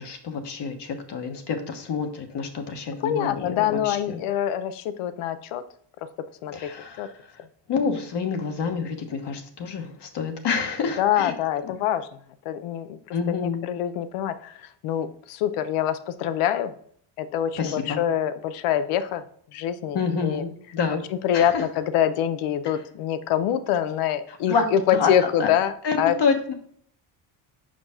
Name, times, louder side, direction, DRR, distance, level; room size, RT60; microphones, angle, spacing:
voice 1, 0.0-4.2 6.5-7.1 7.7-11.3 11.6-11.7 13.1-13.7 17.6-18.0 19.9-21.0 21.3-21.6 22.6-22.7 24.3-24.6 24.9-25.5 25.8-26.5, left 5 dB, 55° left, 5 dB, 1.3 m, -28 dB
voice 2, 3.0-5.6 6.4-6.7 7.0-7.1 11.0-12.1 12.5-14.6 14.8-16.7 17.2-19.2 19.5-20.4 21.2-26.2, left 10 dB, 85° left, 13 dB, 0.7 m, -25 dB
5.4 x 5.1 x 3.6 m, 0.62 s
cardioid pair, 105°, 50 cm